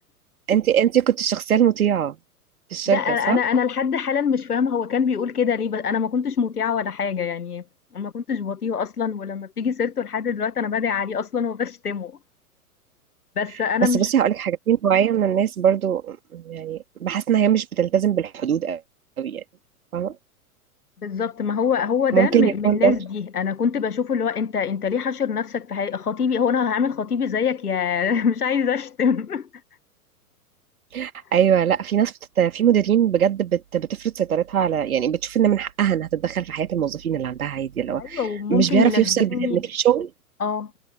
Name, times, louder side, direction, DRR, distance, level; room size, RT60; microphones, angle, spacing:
voice 1, 0.5-2.2 2.7-3.4 13.8-18.8 19.2-19.4 19.9-20.1 22.1-23.0 30.9-38.2 38.5-40.1, right 9 dB, 65° right, 3.1 m, -21 dB
voice 2, 2.9-7.6 7.9-12.2 13.4-14.1 21.0-29.5 38.0-39.7 40.4-40.7, left 6 dB, 75° left, 1.4 m, -24 dB
figure-of-eight pair, 105°, 46 cm